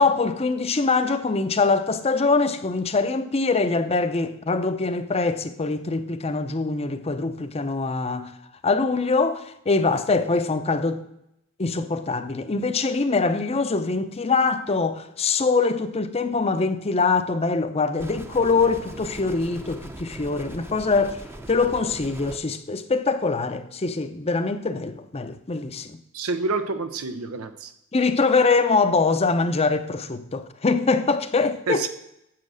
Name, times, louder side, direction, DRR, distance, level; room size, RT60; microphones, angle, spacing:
voice 1, 0.0-8.3 8.6-11.0 11.6-21.2 21.5-26.0 27.9-31.9, left 4 dB, 30° left, 0.6 m, -23 dB
sound 1, 18.0-22.4, right 1 dB, 10° right, 0.7 m, -40 dB
voice 2, 26.1-27.7 31.7-31.9, right 3 dB, 85° right, 0.7 m, -28 dB
7.6 x 7.6 x 6.2 m
head